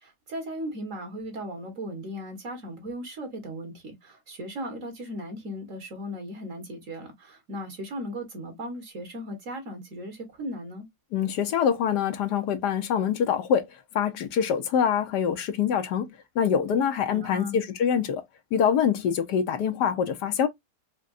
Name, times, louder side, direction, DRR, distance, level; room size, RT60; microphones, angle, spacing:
voice 1, 0.0-10.9 17.1-17.6, equal, 50° right, 1.8 m, -37 dB
voice 2, 11.1-13.7 13.9-16.1 16.3-18.2 18.5-20.5, left 8 dB, 80° left, 1.4 m, -25 dB
5.1 x 2.3 x 2.4 m
omnidirectional pair, 1.8 m